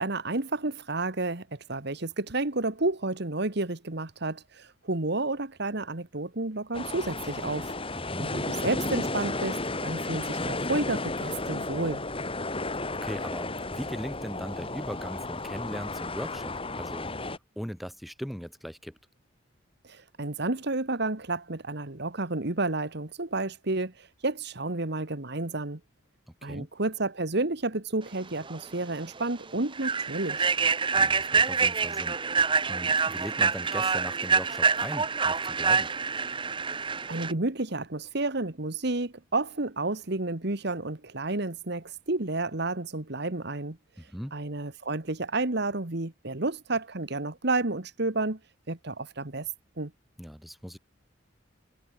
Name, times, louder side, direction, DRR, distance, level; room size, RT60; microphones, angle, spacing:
voice 1, 0.0-7.7 8.2-12.0 19.8-25.8 26.4-30.5 37.1-48.4 48.7-49.9, right 2 dB, 60° right, 1.8 m, -31 dB
sound 1, 6.7-17.4, left 2 dB, 30° left, 5.9 m, -33 dB
voice 2, 7.9-8.3 12.9-17.1 17.6-19.0 26.4-26.7 30.9-32.2 32.7-35.9 44.0-44.3 50.2-50.8, equal, ahead, 5.9 m, -39 dB
Human voice / Train, 28.5-28.6 29.0-29.2 29.7-37.3, right 5 dB, 25° right, 1.0 m, -26 dB
head